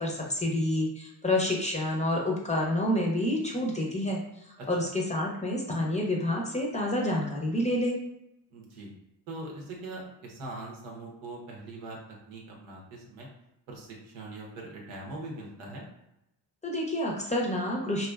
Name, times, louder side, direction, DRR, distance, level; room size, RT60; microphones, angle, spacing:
voice 1, 0.0-4.2 4.7-8.0 16.6-18.1, left 1 dB, 15° left, -2 dB, 0.6 m, -28 dB
voice 2, 8.5-8.9 9.3-12.0 12.3-13.3 13.7-15.8, right 2 dB, 85° right, -2 dB, 0.8 m, -41 dB
2.5 x 2.3 x 2.2 m, 0.85 s
supercardioid pair, 60°, 48 cm